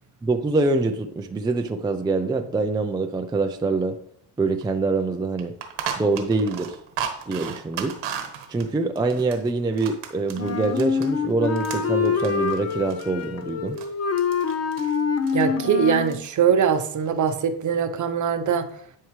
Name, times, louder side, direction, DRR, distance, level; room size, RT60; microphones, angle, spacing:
voice 1, 0.2-4.0 4.4-5.5 6.0-6.8 7.3-8.0 8.5-13.8, right 3 dB, 10° right, 5 dB, 0.4 m, -25 dB
sound 1, 4.6-4.7 5.0-5.1 5.4-11.1 11.4-13.9 14.2-15.0 15.2-15.5 15.9-16.3 16.6-17.3, right 8 dB, 85° right, 1.3 m, -35 dB
Wind instrument woodwind instrument, 10.4-16.2, left 5 dB, 35° left, 0.7 m, -25 dB
voice 2, 15.3-18.7, right 7 dB, 45° right, 8 dB, 0.8 m, -22 dB
10.5 x 4.6 x 3.1 m, 0.67 s
cardioid pair, 110°, 42 cm